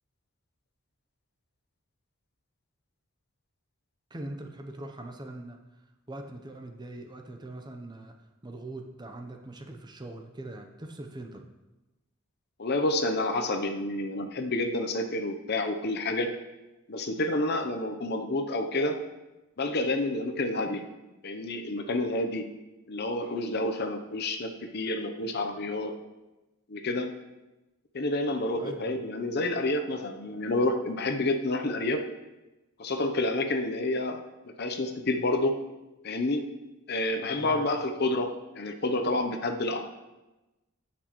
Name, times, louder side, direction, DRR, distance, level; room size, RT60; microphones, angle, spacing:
voice 1, 4.1-5.6 6.1-8.1 8.4-11.5 28.6-29.0 37.4-37.7, right 1 dB, 20° right, 4 dB, 0.7 m, -42 dB
voice 2, 12.6-16.3 16.9-19.0 19.6-20.8 21.2-22.4 22.9-25.9 26.7-27.1 27.9-32.0 32.8-34.2 34.6-35.5 36.0-36.4 36.9-39.8, left 2 dB, 50° left, 6 dB, 0.7 m, -29 dB
14.5 x 6.1 x 3.1 m, 1.0 s
head